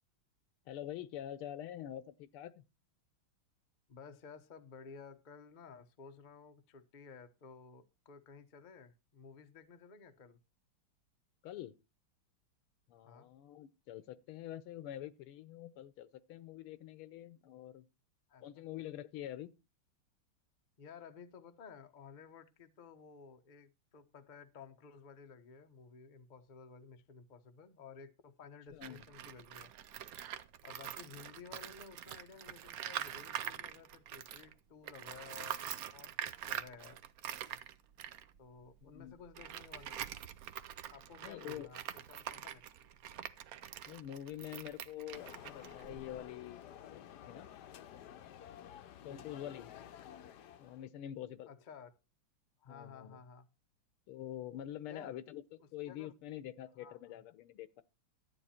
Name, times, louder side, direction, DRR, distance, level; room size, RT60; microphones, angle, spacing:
voice 1, 0.7-2.6 11.4-11.7 12.9-17.8 18.4-19.5 28.7-29.1 38.8-39.1 41.2-41.7 43.9-47.5 49.0-49.7 50.6-51.5 52.7-53.2 54.1-57.8, left 12 dB, 80° left, 1.6 m, -46 dB
voice 2, 3.9-10.4 13.0-13.3 18.3-18.6 20.8-29.7 30.6-37.0 38.4-40.1 40.9-42.6 49.1-49.3 51.5-51.9 52.6-53.5 54.8-55.2 55.6-56.1 56.8-57.2, left 6 dB, 45° left, 0.6 m, -54 dB
Tools, 28.7-34.5 34.8-46.3, right 10 dB, 80° right, 0.8 m, -45 dB
sound 1, 45.1-50.9, left 10 dB, 65° left, 1.1 m, -52 dB
12.0 x 8.8 x 4.3 m
omnidirectional pair, 2.4 m